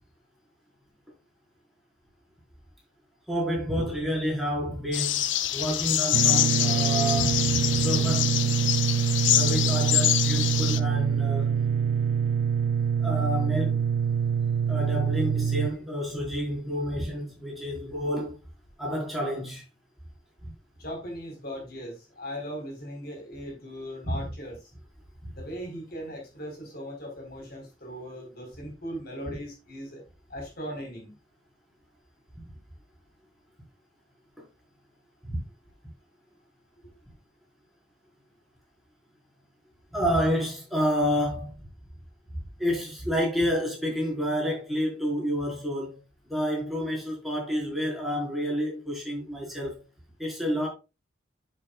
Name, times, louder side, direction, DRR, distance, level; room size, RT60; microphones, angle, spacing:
voice 1, 3.3-5.3 5.5-8.3 9.3-11.6 13.0-13.8 14.7-18.4 18.8-19.6 20.4-20.5 24.1-24.2 29.3-29.4 34.4-34.5 35.3-35.4 39.9-41.5 42.6-46.0 46.3-49.8 50.2-50.7, equal, ahead, 4.7 m, -29 dB
Many birds chirping in forest, 4.9-10.8, left 12 dB, 80° left, 0.7 m, -25 dB
sound 1, 6.1-15.7, right 7 dB, 75° right, 0.3 m, -25 dB
voice 2, 20.8-24.7 25.3-30.0 30.3-31.1 36.8-36.9, equal, 55° left, 4.1 m, -39 dB
9.2 x 8.3 x 2.3 m
head